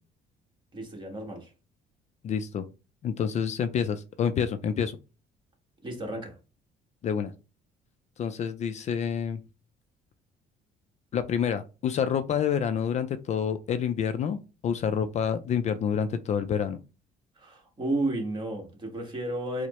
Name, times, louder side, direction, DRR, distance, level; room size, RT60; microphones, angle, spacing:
voice 1, 0.7-1.5 5.8-6.3 17.4-19.7, right 1 dB, 25° right, 1.3 m, -32 dB
voice 2, 2.2-2.7 3.0-5.0 7.0-7.3 8.2-9.4 11.1-16.8, left 7 dB, 45° left, 0.4 m, -28 dB
4.5 x 2.0 x 3.0 m
cardioid pair, 110°, 17 cm